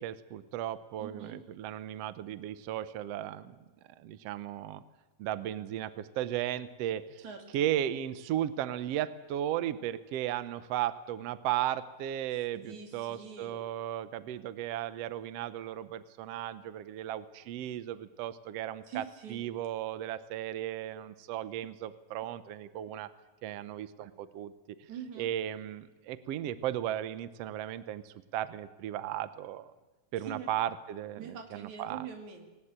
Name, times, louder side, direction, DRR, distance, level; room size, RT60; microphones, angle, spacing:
voice 1, 0.0-3.6 4.0-4.8 5.2-7.2 7.5-19.0 19.3-23.1 23.4-24.5 25.2-29.7 30.1-32.1, right 12 dB, 80° right, 14 dB, 1.4 m, -35 dB
voice 2, 1.0-1.4 7.2-7.7 12.5-13.6 18.9-19.4 24.9-25.3 30.2-30.6 31.2-32.5, right 7 dB, 60° right, 4 dB, 3.8 m, -44 dB
19.5 x 19.0 x 8.8 m, 1.1 s
omnidirectional pair, 3.9 m